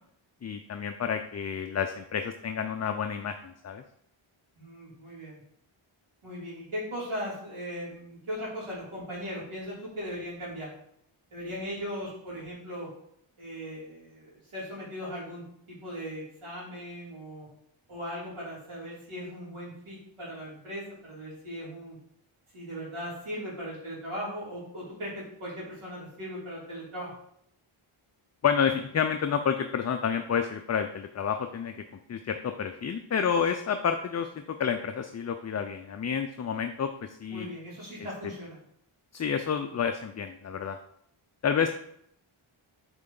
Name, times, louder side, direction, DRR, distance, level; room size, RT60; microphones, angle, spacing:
voice 1, 0.4-3.8 28.4-31.7 32.1-37.5 39.1-40.8 41.4-41.7, left 7 dB, 35° left, 6 dB, 0.4 m, -29 dB
voice 2, 4.6-5.4 6.2-10.7 11.3-12.9 13.4-17.5 17.9-22.0 22.5-27.1 37.3-38.6, equal, 75° right, -7 dB, 2.9 m, -38 dB
8.0 x 4.3 x 3.8 m, 0.70 s
wide cardioid pair, 140°, 50 cm